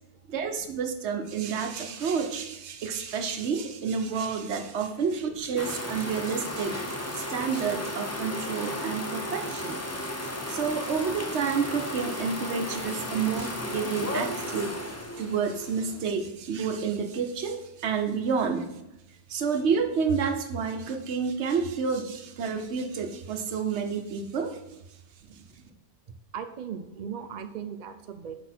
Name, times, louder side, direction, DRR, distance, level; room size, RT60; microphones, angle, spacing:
voice 1, 0.3-14.8 15.2-18.7 19.3-24.6 25.3-25.4, right 6 dB, 70° right, 6 dB, 1.0 m, -30 dB
sound 1, 5.6-16.0, left 1 dB, 15° left, 0.6 m, -34 dB
voice 2, 26.3-28.4, right 7 dB, 55° right, 8 dB, 0.5 m, -37 dB
6.1 x 5.5 x 4.3 m, 0.91 s
omnidirectional pair, 1.2 m